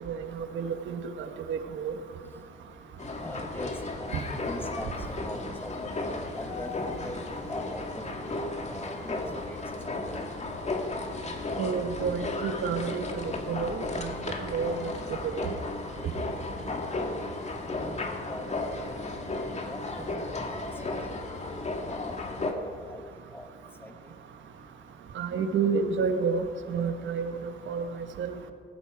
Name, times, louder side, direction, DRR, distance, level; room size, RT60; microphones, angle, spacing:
voice 1, 0.0-1.9 11.6-14.1 14.5-14.7 15.4-15.5 25.1-26.4 26.7-27.9 28.2-28.5, right 5 dB, 70° right, 7 dB, 1.5 m, -30 dB
sound 1, 3.0-22.5, left 2 dB, 35° left, 2.1 m, -34 dB
voice 2, 3.2-5.9 6.4-6.7 7.0-9.2 9.5-9.6 10.1-10.2 17.7-18.8 19.2-19.3 19.7-20.1 20.5-20.6 21.5-21.6 22.0-23.0 23.3-23.5 23.8-23.9, left 1 dB, 10° left, 6 dB, 1.7 m, -42 dB
18.0 x 15.5 x 4.8 m, 2.1 s
cardioid pair, 90°, 20 cm